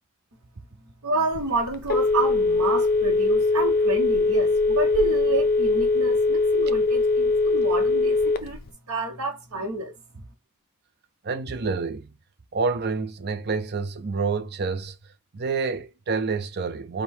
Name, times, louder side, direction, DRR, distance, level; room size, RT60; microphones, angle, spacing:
voice 1, 1.0-8.6 8.9-9.9, right 3 dB, 70° right, 1.0 m, -29 dB
Telephone, 1.3-8.7, left 3 dB, 40° left, 0.4 m, -21 dB
voice 2, 11.2-12.1 12.5-14.9 15.3-17.0, right 4 dB, 45° right, 0.6 m, -28 dB
5.2 x 2.2 x 4.3 m
head